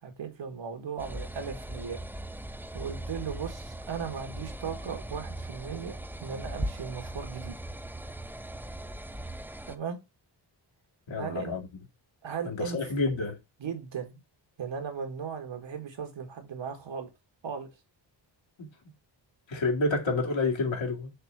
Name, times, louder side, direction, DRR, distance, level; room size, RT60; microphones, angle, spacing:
voice 1, 0.0-2.0 2.7-7.6 9.7-10.0 11.2-11.6 12.2-12.8 13.6-14.2 14.6-17.1 17.4-17.7, right 6 dB, 75° right, 1.9 m, -37 dB
sound 1, 1.0-9.8, right 1 dB, 5° right, 0.5 m, -39 dB
voice 2, 11.1-11.6 12.4-13.4 18.6-18.7 19.5-21.1, left 3 dB, 75° left, 2.4 m, -29 dB
6.6 x 3.5 x 6.2 m
wide cardioid pair, 110°, 45 cm